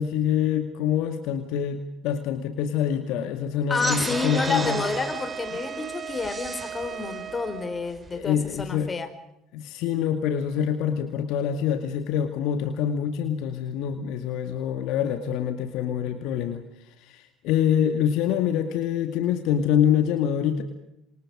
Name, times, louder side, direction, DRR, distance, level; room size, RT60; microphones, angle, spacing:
voice 1, 0.0-4.8 8.1-8.9 9.5-16.6 17.1-20.6, left 9 dB, 65° left, 7 dB, 2.2 m, -25 dB
voice 2, 3.7-9.1, left 4 dB, 25° left, 9 dB, 5.0 m, -29 dB
sound 1, 3.7-8.7, right 3 dB, 25° right, 4.2 m, -36 dB
Wind instrument woodwind instrument, 4.1-8.0, right 8 dB, 40° right, 1.3 m, -37 dB
27.5 x 27.5 x 5.1 m, 0.83 s
hypercardioid pair, 65°, 0 cm